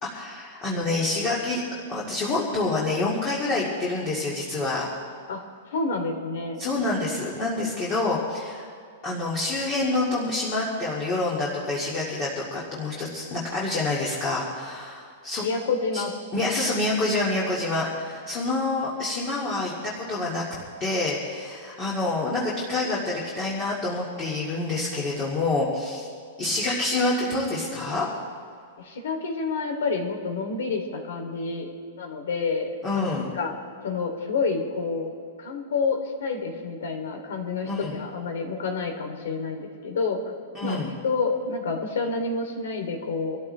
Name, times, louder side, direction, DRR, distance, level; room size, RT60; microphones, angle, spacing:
voice 1, 0.0-1.6 1.9-4.9 6.6-8.7 9.0-15.4 15.9-16.0 16.3-20.4 20.8-26.1 26.4-28.1 32.8-33.3 37.6-38.0 40.5-40.9, left 2 dB, 20° left, -5 dB, 2.2 m, -27 dB
voice 2, 5.7-6.6 15.4-16.1 26.9-27.0 28.8-31.7 32.0-32.7 32.9-33.5 33.8-35.1 35.4-40.2 40.6-43.4, left 4 dB, 80° left, 4 dB, 2.9 m, -28 dB
24.5 x 14.0 x 3.4 m, 2.3 s
supercardioid pair, 170°, 0 cm